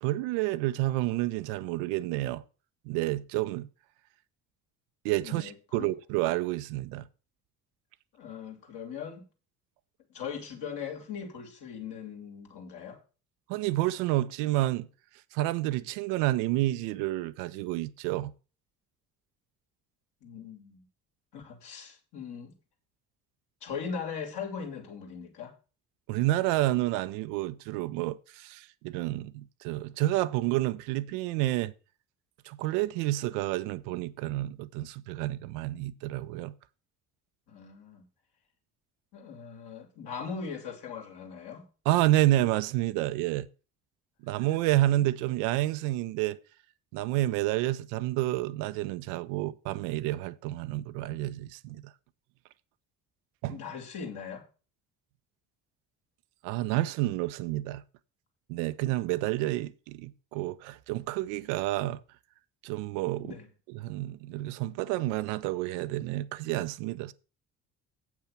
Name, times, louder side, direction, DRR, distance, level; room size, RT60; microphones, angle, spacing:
voice 1, 0.0-2.4 2.9-3.7 5.0-7.0 13.5-14.9 15.3-18.3 26.1-31.7 32.4-36.5 41.9-43.5 44.2-46.4 46.9-51.9 53.4-53.6 56.4-57.8 58.5-62.0 62.6-63.3 63.7-67.1, right 16 dB, 65° right, 0.7 m, -29 dB
voice 2, 5.2-5.9 8.1-9.2 10.1-13.0 20.2-20.8 21.3-22.5 23.6-25.5 37.5-38.1 39.1-41.7 53.5-54.4 63.2-63.5, left 6 dB, 55° left, 2.5 m, -40 dB
8.2 x 6.0 x 5.7 m
figure-of-eight pair, 50°, 47 cm